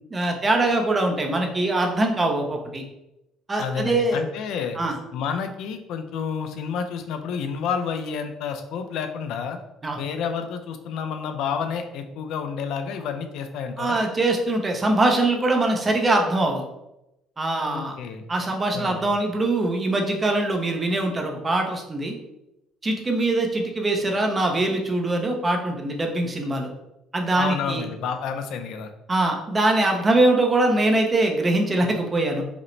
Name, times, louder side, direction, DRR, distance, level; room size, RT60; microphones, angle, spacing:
voice 1, 0.1-2.8 3.5-4.2 4.8-5.0 9.8-10.0 13.8-16.6 17.4-17.9 18.3-22.2 22.8-26.7 27.1-27.8 29.1-32.4, right 2 dB, 20° right, 2 dB, 0.5 m, -22 dB
voice 2, 3.6-4.8 5.1-9.6 10.0-14.0 17.7-18.2 18.7-19.1 27.3-28.9, left 6 dB, 65° left, 7 dB, 0.4 m, -30 dB
4.9 x 2.0 x 3.1 m, 0.90 s
cardioid pair, 145°, 0 cm